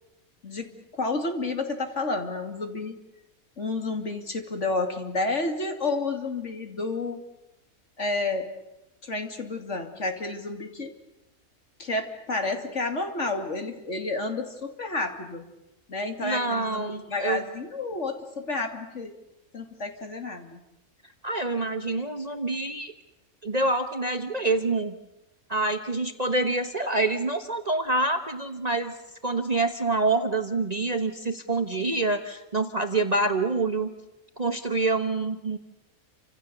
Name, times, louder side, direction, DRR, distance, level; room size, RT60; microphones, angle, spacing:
voice 1, 0.9-2.9 3.6-7.2 8.0-8.5 9.0-10.9 11.8-15.5 15.9-19.1 19.5-20.6, left 3 dB, 55° left, 5 dB, 3.0 m, -30 dB
voice 2, 16.2-17.4 21.2-22.9 23.4-25.0 25.5-28.9 29.2-33.9 34.4-35.6, right 2 dB, 30° right, 6 dB, 1.3 m, -26 dB
29.0 x 26.0 x 6.9 m, 0.94 s
omnidirectional pair, 1.5 m